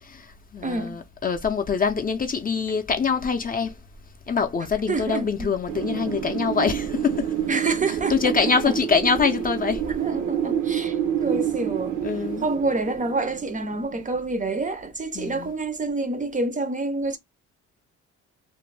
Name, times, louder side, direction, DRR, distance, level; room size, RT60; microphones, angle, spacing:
voice 1, 0.0-3.8 4.3-7.4 8.1-9.9 12.0-12.5 15.2-15.5, left 5 dB, 30° left, 0.5 m, -24 dB
voice 2, 0.6-1.0 4.9-5.5 7.5-8.3 8.7-8.8 9.9-12.0 12.4-17.2, right 3 dB, 25° right, 0.5 m, -27 dB
Wind, 5.7-14.4, right 9 dB, 80° right, 0.6 m, -28 dB
2.5 x 2.1 x 3.1 m
cardioid pair, 90°, 30 cm